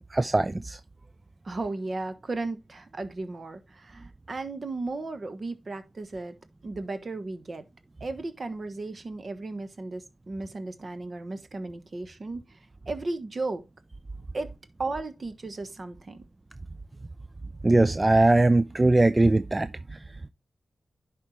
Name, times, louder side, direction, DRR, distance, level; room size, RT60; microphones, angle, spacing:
voice 1, 0.1-0.8 17.6-20.0, right 2 dB, 30° right, 0.4 m, -21 dB
voice 2, 1.4-6.4 6.6-7.6 8.0-13.6 14.3-14.5 14.8-16.2, right 3 dB, 50° right, 1.3 m, -35 dB
11.0 x 4.4 x 3.2 m
supercardioid pair, 40°, 0 cm